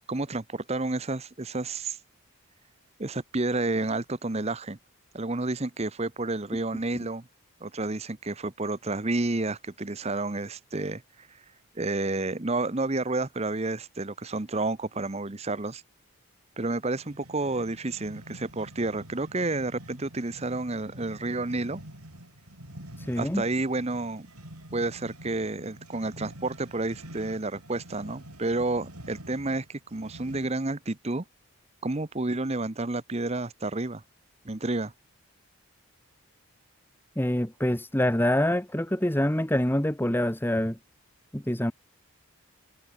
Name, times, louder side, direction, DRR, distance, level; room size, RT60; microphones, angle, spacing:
voice 1, 0.1-2.0 3.0-4.8 5.1-7.3 7.6-11.4 11.7-15.8 16.6-21.8 23.2-24.3 24.7-31.2 31.8-34.0 34.4-34.9, right 2 dB, 30° right, 0.9 m, -30 dB
sound 1, 17.0-30.7, right 1 dB, 90° right, 7.8 m, -47 dB
voice 2, 23.0-23.4 37.2-40.8 41.3-41.7, left 1 dB, 10° left, 1.1 m, -25 dB
head